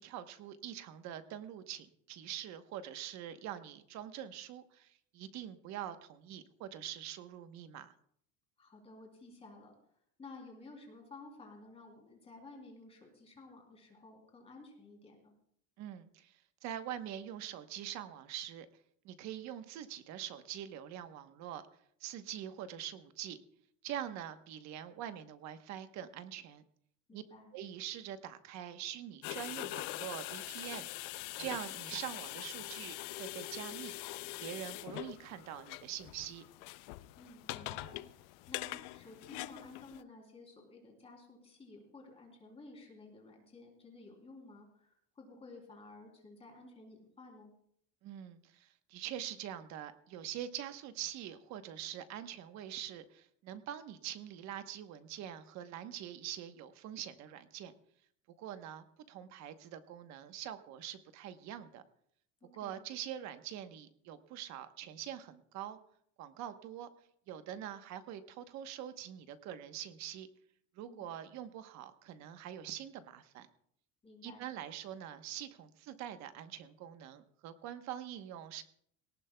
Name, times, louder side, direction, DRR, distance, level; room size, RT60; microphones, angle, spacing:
voice 1, 0.0-7.9 15.8-18.7 19.0-21.6 22.0-23.4 23.8-26.6 27.1-27.2 27.5-30.9 31.4-33.9 34.4-36.4 48.0-57.7 58.4-61.8 62.5-65.8 66.2-66.9 67.3-70.3 70.7-73.5 74.2-78.6, right 10 dB, 45° right, 9 dB, 1.1 m, -44 dB
voice 2, 8.6-9.7 10.2-15.3 27.1-27.5 37.2-38.1 38.5-47.5 62.4-62.8 70.8-71.0 74.0-74.5, left 3 dB, 15° left, 1 dB, 3.2 m, -54 dB
sound 1, 29.2-40.0, left 18 dB, 55° left, 0.5 m, -43 dB
19.5 x 18.0 x 2.3 m, 0.67 s
cardioid pair, 170°, 38 cm